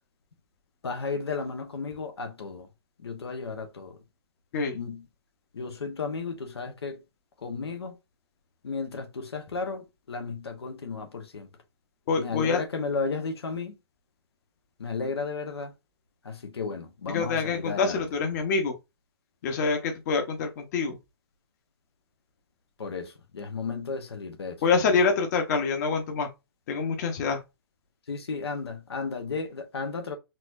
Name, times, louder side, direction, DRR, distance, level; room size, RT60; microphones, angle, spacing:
voice 1, 0.8-2.7 3.0-4.0 4.7-5.1 5.5-7.0 7.4-8.0 8.6-11.5 12.2-13.7 14.8-15.7 16.2-18.0 22.8-24.5 24.8-25.0 28.1-30.2, left 4 dB, 80° left, 1.0 m, -34 dB
voice 2, 12.1-12.6 17.1-18.8 19.4-21.0 24.6-26.3 26.7-27.4, left 4 dB, 40° left, 1.0 m, -26 dB
4.2 x 2.9 x 2.5 m
hypercardioid pair, 140°, 13 cm